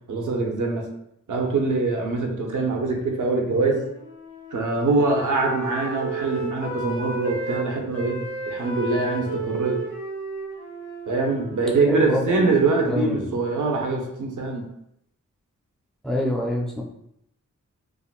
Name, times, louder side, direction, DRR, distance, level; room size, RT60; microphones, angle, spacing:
voice 1, 0.1-0.9 1.3-3.8 4.5-9.8 11.1-14.7, right 3 dB, 80° right, 1 dB, 0.7 m, -23 dB
Wind instrument woodwind instrument, 2.7-7.6 7.9-13.2, right 2 dB, 65° left, 1.4 m, -34 dB
voice 2, 11.8-12.5 12.8-13.3 16.0-16.8, left 1 dB, ahead, -2 dB, 0.4 m, -26 dB
3.6 x 2.1 x 2.3 m, 0.76 s
wide cardioid pair, 145°, 31 cm